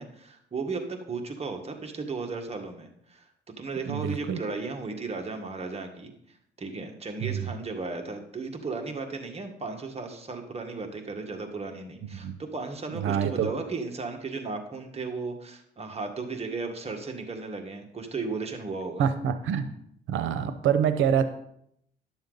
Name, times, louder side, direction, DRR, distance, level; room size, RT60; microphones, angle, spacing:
voice 1, 0.0-3.3 3.6-6.1 6.6-19.1, right 4 dB, 30° right, 3 dB, 1.6 m, -35 dB
voice 2, 3.9-4.4 7.2-7.5 12.1-12.4 12.9-13.5 19.0-19.7 20.1-21.3, right 8 dB, 85° right, 10 dB, 0.8 m, -26 dB
11.0 x 7.0 x 3.9 m, 0.72 s
cardioid pair, 90°, 20 cm